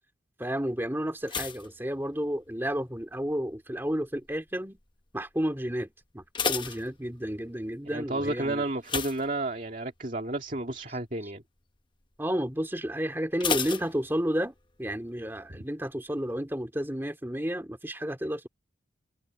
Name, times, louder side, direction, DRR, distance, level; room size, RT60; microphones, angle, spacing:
voice 1, 0.4-4.8 5.1-8.6 12.2-18.5, equal, 10° right, 2.3 m, -31 dB
sound 1, 1.2-2.7 3.0-3.5 4.1-4.5 4.8-4.9 5.3-5.4 6.0-7.5 8.8-10.0 10.3-10.6 11.0-11.1 13.4-14.6 14.9-15.0, left 6 dB, 25° left, 1.0 m, -33 dB
voice 2, 7.8-11.4, right 2 dB, 45° right, 2.4 m, -32 dB
head